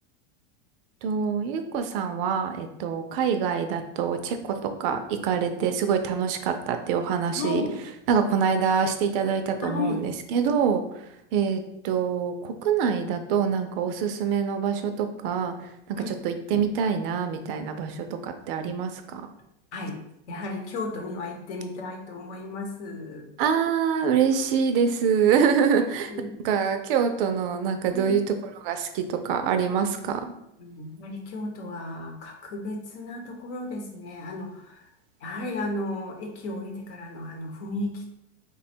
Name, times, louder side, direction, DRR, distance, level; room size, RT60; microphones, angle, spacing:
voice 1, 1.0-7.6 8.1-10.8 11.3-19.3 23.4-26.1 26.4-28.2 28.6-30.3, right 7 dB, 50° right, 7 dB, 0.4 m, -25 dB
voice 2, 7.4-7.8 9.6-10.0 15.9-16.2 19.7-20.0 20.3-23.3 26.1-26.4 27.9-28.3 30.6-34.9 35.2-38.1, left 2 dB, 65° left, 2 dB, 1.0 m, -34 dB
3.3 x 2.2 x 4.2 m, 0.79 s
supercardioid pair, 140°, 37 cm